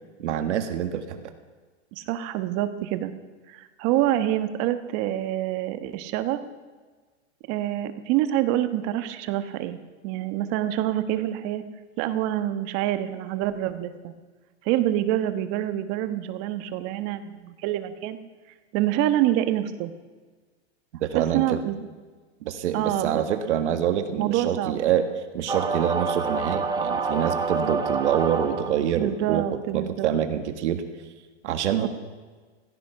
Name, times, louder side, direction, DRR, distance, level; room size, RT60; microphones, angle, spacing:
voice 1, 0.2-1.2 21.0-21.6 22.4-25.1 25.3-29.5 29.7-30.8 31.4-31.9, right 9 dB, 80° right, 8 dB, 1.7 m, -26 dB
voice 2, 1.9-3.1 3.5-6.4 7.5-9.8 10.0-11.6 12.0-14.1 14.6-18.2 18.7-19.9 21.1-21.9 22.7-23.2 24.2-24.8 28.9-30.1 31.8-31.9, right 13 dB, 40° right, 10 dB, 1.3 m, -26 dB
sound 1, 25.5-29.0, right 4 dB, 10° right, 1.0 m, -27 dB
15.5 x 15.5 x 5.7 m, 1.4 s
supercardioid pair, 145°, 35 cm